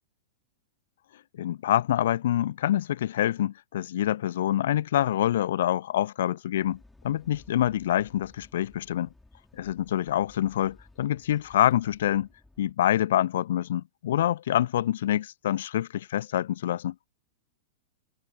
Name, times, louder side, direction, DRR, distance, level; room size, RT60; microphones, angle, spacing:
voice 1, 1.4-6.8 7.0-9.1 9.5-12.3 12.6-17.1, left 12 dB, 55° left, 0.3 m, -26 dB
sound 1, 6.5-12.7, left 2 dB, 5° left, 6.0 m, -57 dB
figure-of-eight pair, 95°, 0 cm